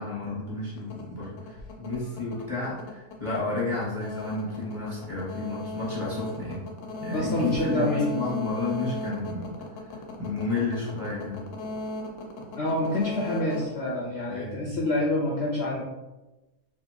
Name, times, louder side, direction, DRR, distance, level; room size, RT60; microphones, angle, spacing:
voice 1, 0.0-6.6 7.0-7.8 8.1-9.5 9.8-11.4 14.3-14.7, left 3 dB, 20° right, -8 dB, 1.2 m, -32 dB
sound 1, 0.8-14.6, left 1 dB, 85° left, 1.1 m, -37 dB
voice 2, 7.1-8.1 12.6-15.8, left 1 dB, 60° left, -4 dB, 0.7 m, -27 dB
3.3 x 2.7 x 2.8 m, 1.1 s
omnidirectional pair, 1.6 m